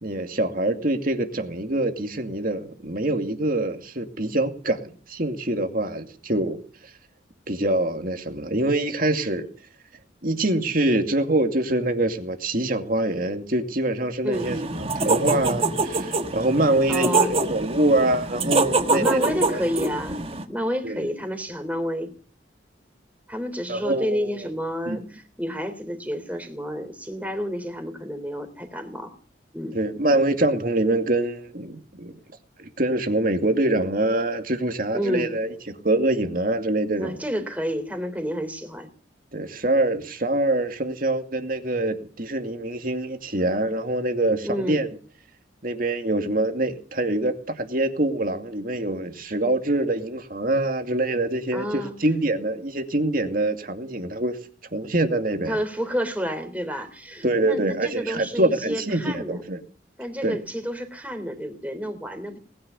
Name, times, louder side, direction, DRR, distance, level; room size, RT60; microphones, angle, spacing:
voice 1, 0.0-6.6 7.5-9.5 10.2-19.6 20.8-21.1 23.7-24.3 24.9-25.0 29.7-32.2 32.6-35.5 35.8-37.2 39.3-44.9 45.6-54.4 54.7-55.6 57.2-59.6 60.2-60.4, right 1 dB, 45° right, 6 dB, 2.4 m, -25 dB
sound 1, 14.3-20.4, right 3 dB, 30° right, 1.6 m, -25 dB
voice 2, 16.9-17.4 18.9-22.1 23.3-29.2 29.5-29.8 34.9-35.3 37.0-38.9 44.4-44.8 51.5-51.9 55.5-59.4 60.0-62.4, equal, 10° right, 8 dB, 3.5 m, -30 dB
19.5 x 10.5 x 7.0 m, 0.43 s
head